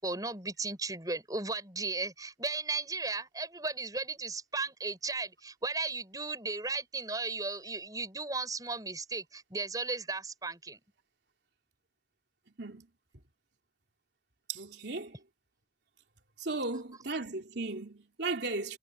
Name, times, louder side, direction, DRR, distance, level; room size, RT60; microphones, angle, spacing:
voice 1, 0.0-10.8, right 3 dB, 20° right, 7.1 m, -35 dB
voice 2, 14.5-15.2 16.4-18.8, right 3 dB, 80° right, 3.2 m, -36 dB
head